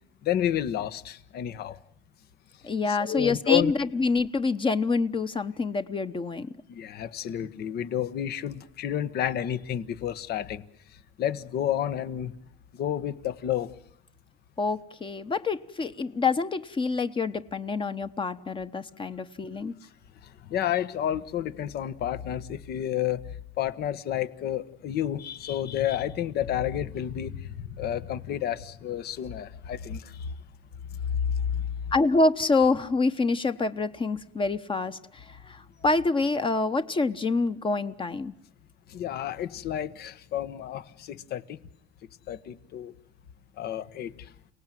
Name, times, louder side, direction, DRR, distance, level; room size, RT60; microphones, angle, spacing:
voice 1, 0.2-1.8 2.9-3.7 6.7-10.6 11.2-12.3 12.8-13.7 20.5-23.2 23.6-27.3 27.8-30.0 38.9-41.4 42.3-42.9 43.6-44.1, left 11 dB, 70° left, 1.4 m, -30 dB
voice 2, 2.6-6.5 14.6-19.7 31.9-38.3, left 3 dB, 30° left, 1.1 m, -26 dB
29.5 x 18.5 x 9.2 m
cardioid pair, 110°, 17 cm